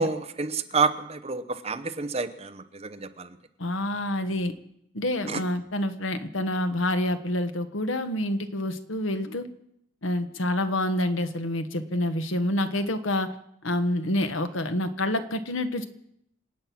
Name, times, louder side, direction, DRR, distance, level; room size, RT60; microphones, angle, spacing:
voice 1, 0.0-3.4 5.3-5.4, right 4 dB, 30° right, 10 dB, 0.9 m, -29 dB
voice 2, 3.6-4.5 4.9-9.4 10.0-13.3 13.6-15.8, left 1 dB, 80° left, 9 dB, 1.3 m, -27 dB
26.5 x 9.0 x 6.0 m, 0.76 s
head